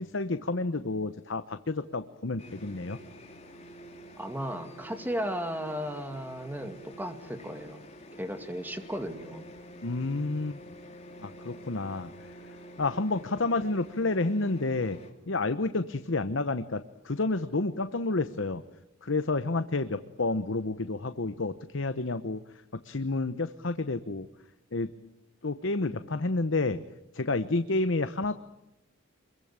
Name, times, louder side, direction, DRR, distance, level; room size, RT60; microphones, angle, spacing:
voice 1, 0.0-3.0 9.8-10.6 11.2-12.1 12.4-15.0 15.3-18.6 19.0-22.4 22.7-24.3 24.7-24.9 25.4-26.8 27.1-28.3, left 3 dB, 65° left, 11 dB, 0.9 m, -30 dB
sound 1, 2.4-15.1, equal, 30° left, 3.2 m, -48 dB
voice 2, 4.2-7.8 8.2-9.4, equal, 10° right, 7 dB, 2.3 m, -35 dB
27.0 x 22.5 x 8.9 m, 0.90 s
head